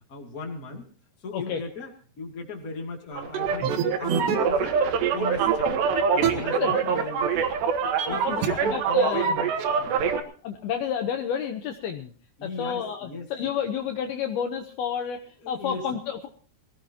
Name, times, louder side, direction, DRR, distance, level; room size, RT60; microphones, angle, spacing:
voice 1, 0.1-0.9 1.2-1.9 2.2-4.8 5.0-5.7 6.1-7.5 8.1-9.5 9.8-10.0 12.4-13.3 15.4-15.8, left 3 dB, 25° left, 1 dB, 2.2 m, -36 dB
sound 1, 3.1-10.2, right 6 dB, 75° right, 3.5 m, -24 dB
voice 2, 6.2-6.7 8.1-9.4 10.4-12.1 12.4-16.3, left 8 dB, 70° left, 5 dB, 2.6 m, -30 dB
22.5 x 16.5 x 2.9 m, 0.41 s
omnidirectional pair, 5.1 m